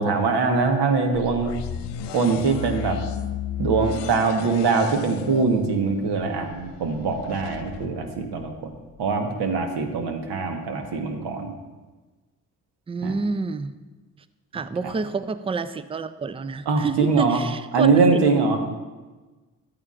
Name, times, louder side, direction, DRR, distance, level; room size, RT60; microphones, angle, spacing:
voice 1, 0.0-1.5 2.1-3.0 3.6-8.7 9.0-11.5 13.0-13.1 14.8-14.9 16.7-17.4 17.7-18.6, right 4 dB, 60° right, 4 dB, 1.4 m, -22 dB
sound 1, 1.1-9.0, left 9 dB, 65° left, 0.6 m, -35 dB
voice 2, 12.9-13.7 14.5-17.9, right 5 dB, 15° right, 13 dB, 0.4 m, -28 dB
12.5 x 8.7 x 2.5 m, 1.2 s
hypercardioid pair, 45°, 45 cm